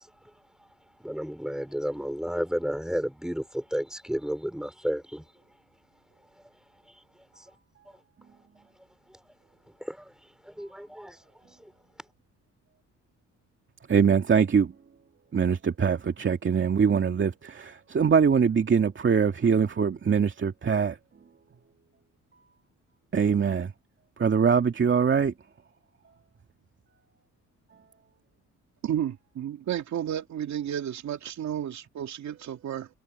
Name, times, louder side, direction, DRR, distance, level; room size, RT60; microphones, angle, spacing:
voice 1, 1.0-5.2 7.4-7.5 9.8-10.1 10.4-11.2 11.6-11.7, equal, ahead, 4.5 m, -32 dB
voice 2, 13.9-14.7 15.3-21.0 23.1-23.7 24.2-25.3, right 6 dB, 40° right, 2.3 m, -23 dB
voice 3, 28.8-32.9, right 10 dB, 65° right, 2.5 m, -32 dB
cardioid pair, 90°, 30 cm